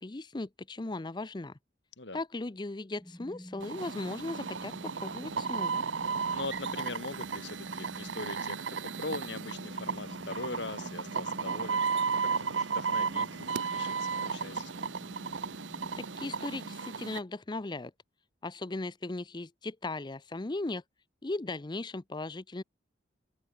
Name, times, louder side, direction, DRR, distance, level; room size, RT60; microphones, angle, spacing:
voice 1, 0.0-1.5 2.1-4.7 5.0-5.8 16.2-17.9 18.4-20.8 21.2-22.6, left 2 dB, 25° left, 0.6 m, -37 dB
sound 1, 3.0-16.8, equal, 5° left, 6.6 m, -50 dB
sound 2, 3.6-17.2, right 5 dB, 90° right, 1.0 m, -34 dB
voice 2, 6.3-14.8, left 2 dB, 70° left, 3.7 m, -41 dB
open air
head